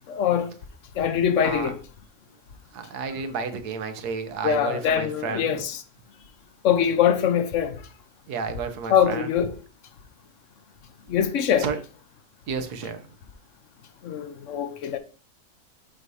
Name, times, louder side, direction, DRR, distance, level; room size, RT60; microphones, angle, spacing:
voice 1, 0.1-0.5 1.0-1.8 4.4-5.8 6.6-7.8 8.9-9.5 11.1-11.7 14.0-15.0, left 9 dB, 60° left, 0.9 m, -23 dB
voice 2, 1.4-1.7 2.7-5.6 8.3-9.3 11.6-11.8 12.5-13.0, right 5 dB, 85° right, 1.4 m, -31 dB
7.6 x 2.6 x 4.7 m
omnidirectional pair, 1.6 m